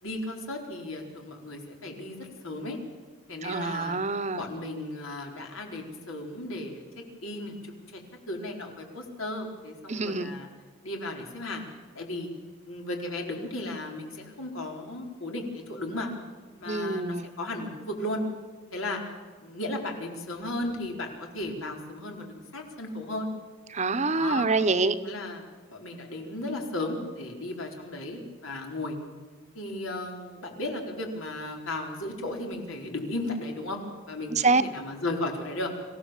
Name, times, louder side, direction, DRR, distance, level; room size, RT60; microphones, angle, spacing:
voice 1, 0.0-2.8 3.3-4.0 4.4-6.8 7.2-8.0 8.3-10.5 10.8-11.6 11.9-12.3 12.6-16.1 16.6-18.2 18.7-19.0 19.4-21.1 21.3-23.3 24.1-24.5 25.0-25.4 25.7-29.0 29.5-33.8 34.1-35.7, left 1 dB, 90° left, 1 dB, 4.3 m, -35 dB
voice 2, 3.4-4.4 9.9-10.3 16.7-17.3 23.7-25.0 34.3-34.6, right 3 dB, 35° right, 11 dB, 0.9 m, -26 dB
26.0 x 16.0 x 7.3 m, 1.5 s
head